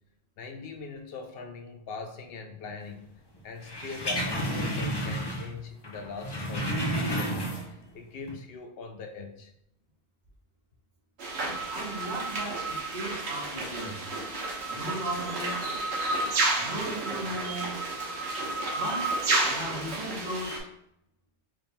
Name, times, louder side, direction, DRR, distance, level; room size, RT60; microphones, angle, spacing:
voice 1, 0.4-3.0 3.4-6.7 7.1-9.5, left 4 dB, 65° left, 5 dB, 0.7 m, -41 dB
sound 1, 3.6-5.6 5.8-7.9 8.2-8.3, equal, 30° left, 0.5 m, -31 dB
sound 2, 11.2-20.6, right 2 dB, 75° right, 1.1 m, -31 dB
voice 2, 11.7-14.0 14.7-15.7 16.6-17.8 18.7-19.2 19.5-20.6, right 1 dB, 45° right, -2 dB, 1.0 m, -36 dB
3.6 x 2.3 x 4.0 m, 0.78 s
omnidirectional pair, 1.1 m